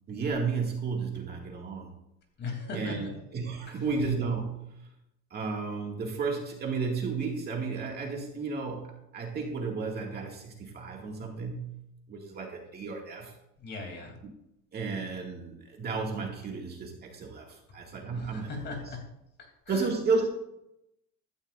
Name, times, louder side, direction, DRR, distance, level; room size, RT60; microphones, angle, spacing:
voice 1, 0.1-1.9 2.7-4.6 5.3-11.7 12.1-13.3 14.2-14.3 14.7-18.5 18.9-19.0 19.7-20.3, right 4 dB, 30° right, 0 dB, 2.1 m, -33 dB
voice 2, 2.4-3.1 3.7-3.8 13.6-14.2 18.1-19.0 19.4-19.8, left 3 dB, 30° left, 2 dB, 3.1 m, -39 dB
15.5 x 13.0 x 2.6 m, 0.82 s
cardioid pair, 160°, 33 cm